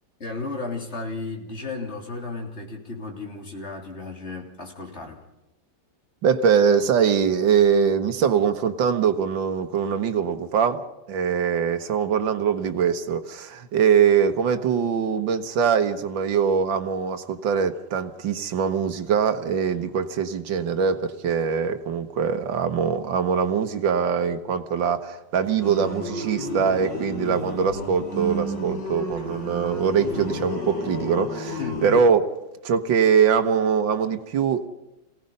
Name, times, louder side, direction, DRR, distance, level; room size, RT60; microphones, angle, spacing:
voice 1, 0.2-5.2 31.6-31.9, left 3 dB, 35° left, 1 dB, 3.5 m, -34 dB
voice 2, 6.2-10.8 11.1-32.3 32.6-34.7, right 7 dB, 80° right, 9 dB, 1.9 m, -22 dB
sound 1, 25.6-32.0, equal, 75° left, 5.2 m, -31 dB
27.5 x 17.5 x 5.4 m, 0.92 s
omnidirectional pair, 2.0 m